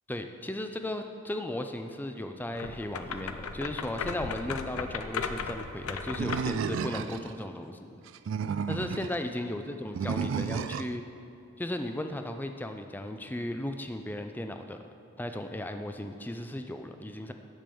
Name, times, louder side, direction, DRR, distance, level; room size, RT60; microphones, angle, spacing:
voice 1, 0.1-8.0 8.7-11.0 11.6-14.8 15.2-17.3, left 1 dB, 10° left, 6 dB, 0.4 m, -36 dB
sound 1, 2.5-6.6, left 5 dB, 90° left, 0.6 m, -36 dB
Animal, 6.2-7.3 8.1-9.2 10.0-11.0, right 6 dB, 60° right, 0.3 m, -32 dB
10.5 x 5.3 x 6.9 m, 2.5 s
head